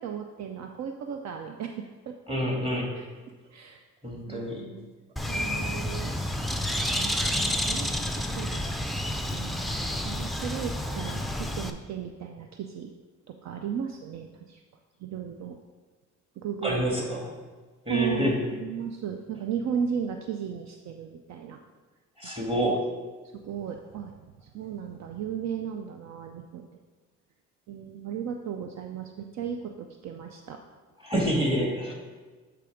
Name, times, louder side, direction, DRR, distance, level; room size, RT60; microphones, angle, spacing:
voice 1, 0.0-2.2 3.0-3.1 3.5-3.8 4.3-4.9 5.3-6.1 7.0-7.1 7.4-8.7 9.3-9.6 10.0-12.9 13.3-14.6 15.0-15.6 16.4-17.1 17.9-21.6 22.4-22.5 23.3-26.7 27.7-30.6, right 7 dB, 65° right, 4 dB, 0.5 m, -35 dB
voice 2, 2.3-2.9 4.0-4.6 16.6-17.3 17.9-18.4 22.2-22.8 31.0-31.9, equal, 20° right, -1 dB, 1.9 m, -27 dB
Bird, 5.2-11.7, left 1 dB, ahead, 0.4 m, -30 dB
8.2 x 3.4 x 5.0 m, 1.3 s
cardioid pair, 90°, 30 cm